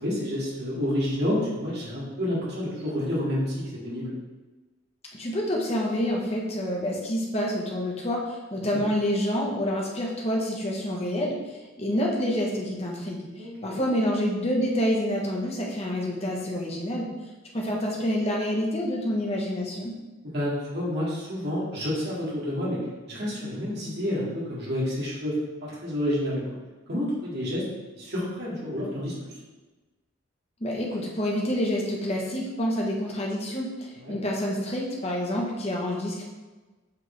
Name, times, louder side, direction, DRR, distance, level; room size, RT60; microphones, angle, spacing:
voice 1, 0.0-4.1 8.6-8.8 13.4-13.8 20.2-22.8 23.1-26.4 26.9-27.6 27.9-29.3 34.0-34.2, left 1 dB, 50° right, -6 dB, 2.4 m, -29 dB
voice 2, 5.1-17.1 17.5-19.9 30.6-36.2, equal, 30° left, -2 dB, 1.3 m, -28 dB
8.1 x 5.2 x 3.4 m, 1.2 s
head